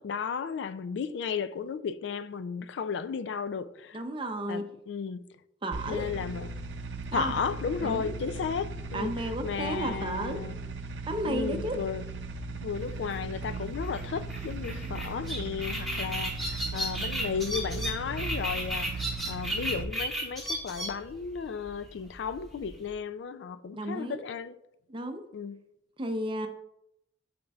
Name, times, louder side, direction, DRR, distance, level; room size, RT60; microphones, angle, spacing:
voice 1, 0.0-4.0 4.5-5.2 5.9-6.5 7.1-9.1 9.4-10.5 11.3-12.0 12.6-24.6 25.3-25.6, left 6 dB, 80° left, 0.3 m, -34 dB
voice 2, 3.9-4.6 5.6-6.0 7.1-7.3 7.8-8.2 8.9-10.4 11.1-11.8 14.7-15.1 18.5-18.8 23.7-24.2 24.9-25.2 26.0-26.5, right 1 dB, 30° right, 0.6 m, -33 dB
sound 1, 5.7-19.8, right 3 dB, 80° right, 0.5 m, -38 dB
sound 2, 12.8-22.9, equal, ahead, 1.6 m, -35 dB
8.6 x 5.1 x 2.3 m
head